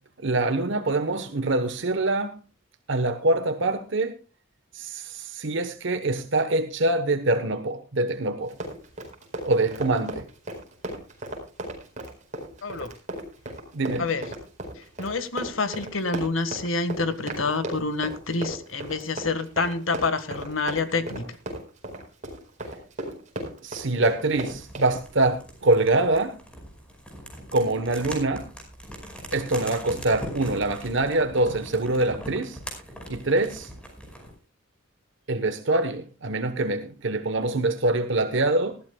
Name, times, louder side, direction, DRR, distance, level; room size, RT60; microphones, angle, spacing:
voice 1, 0.2-2.4 2.9-4.2 4.7-8.5 9.4-10.2 13.7-14.1 23.6-26.4 27.5-28.5 29.3-32.6 33.1-33.7 35.3-38.8, right 2 dB, 65° right, 1.1 m, -24 dB
Run, 8.4-24.9, right 1 dB, 40° right, 4.6 m, -36 dB
voice 2, 14.8-21.4, left 3 dB, 90° left, 1.6 m, -28 dB
sound 1, 24.3-34.4, equal, 5° left, 5.1 m, -41 dB
19.5 x 14.0 x 2.3 m
head